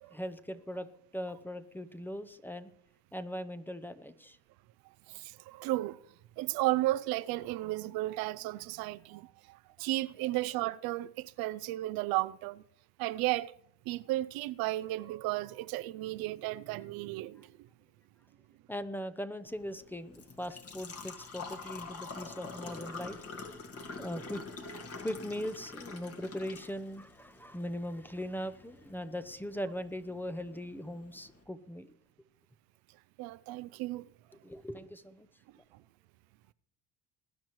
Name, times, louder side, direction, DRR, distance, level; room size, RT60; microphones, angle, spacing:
voice 1, 0.1-2.7 3.1-4.4 9.8-9.9 18.7-23.2 24.0-24.4 25.0-31.9 34.4-35.3, equal, 5° left, 0.7 m, -40 dB
voice 2, 5.1-6.0 6.4-12.6 13.0-13.5 13.9-17.7 33.2-34.1 35.7-35.8, right 17 dB, 70° right, 0.5 m, -34 dB
Engine / Trickle dribble / Fill (with liquid), 19.4-31.4, left 4 dB, 40° left, 1.9 m, -47 dB
20.0 x 10.5 x 3.1 m
supercardioid pair, 95°, 37 cm